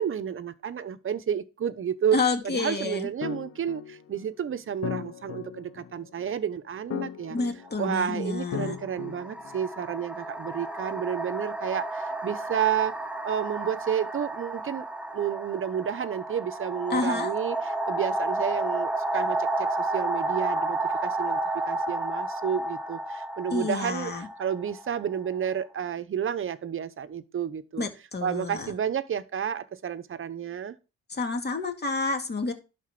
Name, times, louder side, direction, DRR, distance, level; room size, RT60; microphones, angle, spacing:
voice 1, 0.0-2.2 2.4-7.4 7.8-12.9 13.2-14.8 15.1-24.1 24.4-27.9 28.2-30.8, right 8 dB, 45° right, 0.9 m, -31 dB
voice 2, 2.1-3.1 7.3-8.8 16.9-17.3 23.5-24.3 27.8-28.7 31.1-32.5, left 3 dB, 35° left, 2.2 m, -29 dB
sound 1, 3.2-9.9, left 9 dB, 50° left, 0.7 m, -38 dB
sound 2, 7.7-7.8 8.8-25.4, right 2 dB, 5° right, 1.2 m, -31 dB
11.5 x 4.3 x 5.9 m
cardioid pair, 90°, 30 cm